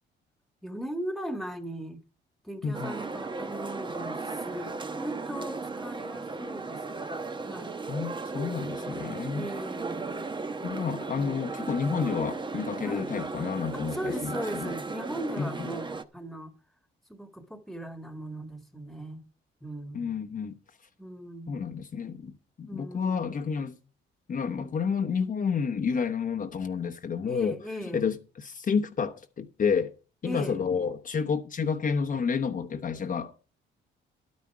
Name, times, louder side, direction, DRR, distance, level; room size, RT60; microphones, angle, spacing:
voice 1, 0.6-2.0 2.5-7.0 7.4-7.8 9.3-10.3 11.1-11.5 12.8-13.1 13.7-16.5 17.1-19.2 19.6-20.2 21.0-21.8 22.7-23.3 27.2-28.0 30.2-30.6, equal, ahead, 1.7 m, -38 dB
voice 2, 2.6-3.0 7.9-9.5 10.6-14.3 14.6-14.7 15.4-15.7 19.9-20.5 21.5-23.8 24.3-29.9 30.2-33.4, left 6 dB, 45° left, 1.0 m, -30 dB
sound 1, 2.7-16.0, right 3 dB, 25° right, 1.0 m, -36 dB
12.0 x 9.5 x 4.7 m
cardioid pair, 90°, 20 cm